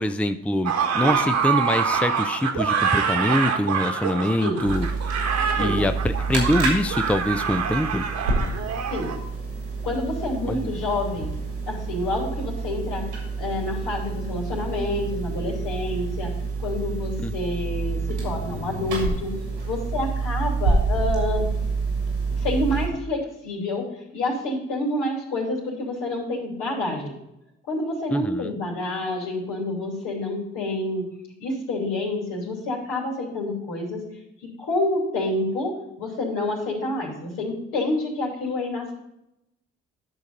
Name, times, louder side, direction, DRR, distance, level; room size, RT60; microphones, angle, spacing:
voice 1, 0.0-4.9 5.6-8.0 10.5-10.7 17.2-17.3 28.1-28.5, left 1 dB, 5° left, 9 dB, 0.6 m, -24 dB
sound 1, 0.6-9.2, right 6 dB, 55° right, 1.4 m, -25 dB
sound 2, 4.7-22.9, right 4 dB, 90° right, 2.3 m, -28 dB
voice 2, 9.8-11.3 11.7-16.3 16.6-19.3 19.6-21.4 22.4-27.2 27.7-31.1 31.4-34.0 34.6-38.9, left 2 dB, 70° left, -2 dB, 3.0 m, -28 dB
10.5 x 6.5 x 3.9 m, 0.83 s
hypercardioid pair, 45°, 32 cm